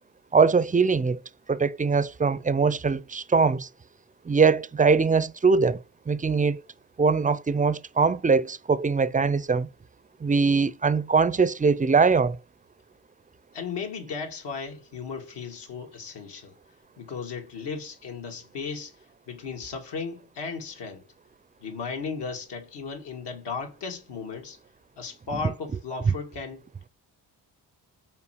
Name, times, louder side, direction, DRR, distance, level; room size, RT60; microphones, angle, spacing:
voice 1, 0.3-1.2 1.5-3.7 4.2-5.8 6.1-6.6 7.0-9.7 10.2-12.4, right 5 dB, 20° right, 0.5 m, -22 dB
voice 2, 13.5-16.5 17.0-18.9 19.3-21.0 21.6-24.6 25.0-26.6, left 5 dB, 70° left, 2.2 m, -35 dB
5.7 x 4.6 x 6.4 m
cardioid pair, 70°, 43 cm